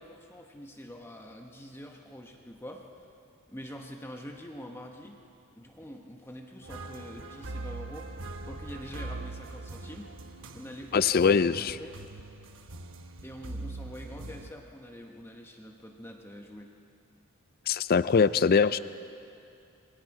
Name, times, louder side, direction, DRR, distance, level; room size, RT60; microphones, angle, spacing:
voice 1, 0.0-3.1 3.5-5.2 5.6-8.1 8.5-10.2 10.5-11.1 11.6-11.9 13.2-16.7, equal, 10° left, 1 dB, 1.1 m, -45 dB
sound 1, 6.6-14.5, right 2 dB, 60° right, 1.1 m, -42 dB
voice 2, 10.9-11.8 17.7-18.8, left 5 dB, 45° left, 15 dB, 0.4 m, -22 dB
28.0 x 21.5 x 4.9 m, 2.6 s
head